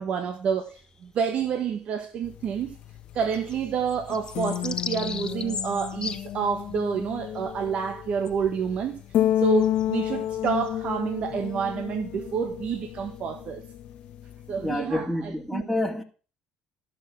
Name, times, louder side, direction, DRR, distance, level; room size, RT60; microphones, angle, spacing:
voice 1, 0.0-2.8 3.1-9.0 9.4-13.6 14.5-15.7, right 7 dB, 60° right, 1.2 m, -29 dB
sound 1, 0.6-1.7 2.1-2.2 2.5-13.1, left 5 dB, 35° left, 1.2 m, -40 dB
sound 2, 2.2-14.8, left 12 dB, 65° left, 1.0 m, -31 dB
voice 2, 14.6-16.0, left 1 dB, ahead, 2.0 m, -28 dB
13.5 x 6.4 x 6.0 m
supercardioid pair, 70°, 2 cm